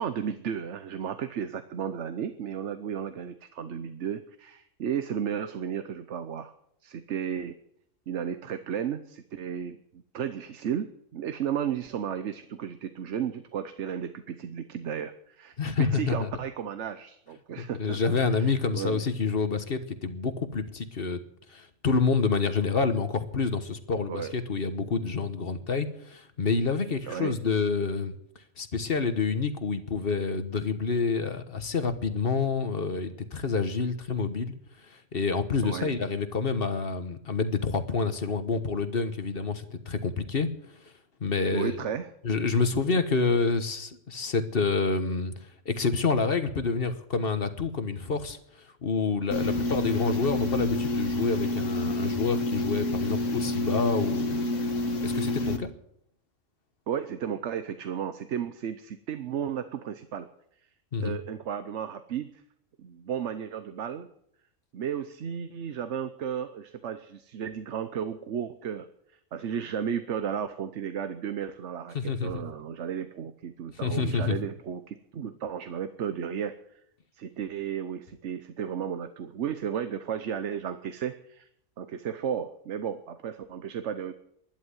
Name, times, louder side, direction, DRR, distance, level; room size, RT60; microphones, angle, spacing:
voice 1, 0.0-6.5 6.8-7.6 8.1-9.8 10.1-19.1 24.1-24.3 27.1-27.3 35.6-35.9 41.5-42.1 56.9-60.3 61.0-62.4 62.8-64.1 64.7-76.6 77.1-81.5 81.8-84.1, right 8 dB, 65° right, 10 dB, 1.1 m, -34 dB
voice 2, 15.6-16.3 17.6-21.2 21.5-28.1 28.6-34.5 35.1-40.5 41.2-41.7 42.2-45.3 45.6-48.4 48.8-54.4 55.0-55.7 60.9-61.2 71.9-72.4 73.8-74.3, left 4 dB, 45° left, 10 dB, 1.3 m, -28 dB
sound 1, 49.3-55.6, left 1 dB, 70° left, 2.0 m, -29 dB
12.0 x 10.5 x 9.6 m, 0.71 s
omnidirectional pair, 1.4 m